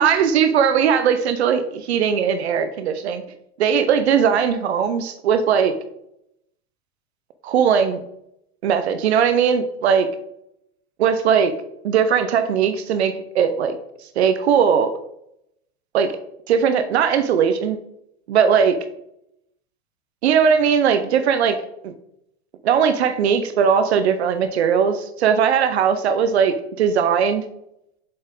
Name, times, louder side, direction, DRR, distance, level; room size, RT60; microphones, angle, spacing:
voice 1, 0.0-3.2 3.6-5.7 7.4-8.0 8.6-10.1 11.0-11.5 11.8-13.8 14.2-14.9 15.9-16.2 16.5-17.8 18.3-18.8 20.2-21.6 21.8-21.9 22.6-27.4, right 7 dB, 85° right, 10 dB, 0.7 m, -19 dB
7.4 x 4.3 x 3.9 m, 0.78 s
hypercardioid pair, 115°, 32 cm